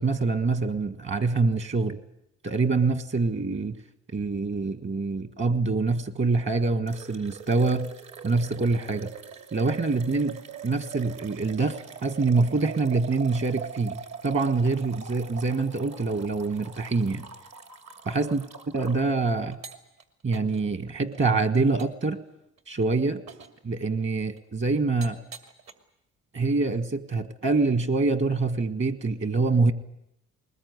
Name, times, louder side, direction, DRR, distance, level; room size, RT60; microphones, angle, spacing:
voice 1, 0.0-2.0 2.4-3.8 4.1-7.9 8.2-9.1 9.5-17.3 18.1-19.6 20.2-22.2 22.7-23.2 23.6-25.2 26.3-29.7, right 3 dB, 40° right, 12 dB, 1.6 m, -25 dB
sound 1, 6.9-19.0 19.5-20.0 20.3-20.6 21.1-21.2 21.8-22.1 22.6-22.8 23.3-23.6 24.4-24.5 25.0-25.7, right 7 dB, 60° right, 2.8 m, -42 dB
21.0 x 20.5 x 9.6 m, 0.79 s
cardioid pair, 90°, 30 cm